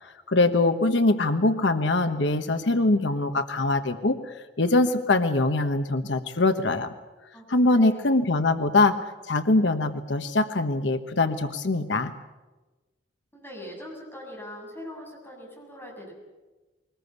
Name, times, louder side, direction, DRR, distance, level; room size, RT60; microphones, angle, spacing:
voice 1, 0.0-6.9 7.5-8.9 9.3-12.1, left 2 dB, 75° left, 9 dB, 1.1 m, -23 dB
voice 2, 7.3-8.1 13.3-16.1, left 1 dB, 10° left, -2 dB, 7.3 m, -42 dB
22.0 x 20.0 x 8.2 m, 1.2 s
head